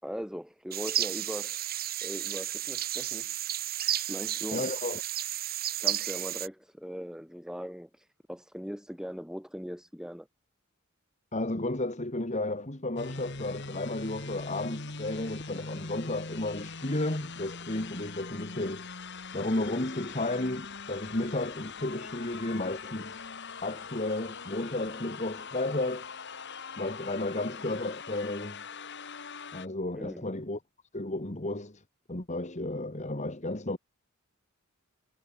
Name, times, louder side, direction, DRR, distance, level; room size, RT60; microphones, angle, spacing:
voice 1, 0.0-1.6 2.0-3.3 4.1-4.7 5.8-10.3 29.9-30.2, equal, 5° right, 3.3 m, -40 dB
sound 1, 0.7-6.5, right 12 dB, 45° right, 2.1 m, -32 dB
voice 2, 4.5-5.0 11.3-18.8 19.3-23.2 23.6-26.1 26.8-28.6 29.5-30.6 30.9-31.8 32.1-33.8, left 2 dB, 30° left, 1.8 m, -33 dB
sound 2, 13.0-29.7, left 4 dB, 55° left, 2.5 m, -42 dB
head